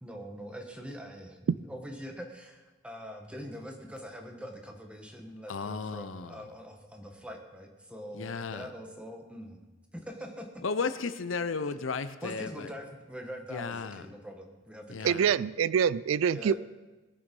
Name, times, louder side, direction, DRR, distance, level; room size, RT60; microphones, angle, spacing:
voice 1, 0.0-9.6 9.9-10.6 12.2-15.2 16.3-16.6, equal, 5° right, 3 dB, 1.4 m, -43 dB
voice 2, 5.5-6.4 8.1-8.7 10.6-12.7 13.5-14.0 14.9-15.3, left 4 dB, 75° left, 12 dB, 0.7 m, -34 dB
voice 3, 15.0-16.6, right 7 dB, 90° right, 19 dB, 0.4 m, -25 dB
20.0 x 6.9 x 5.4 m, 1.2 s
head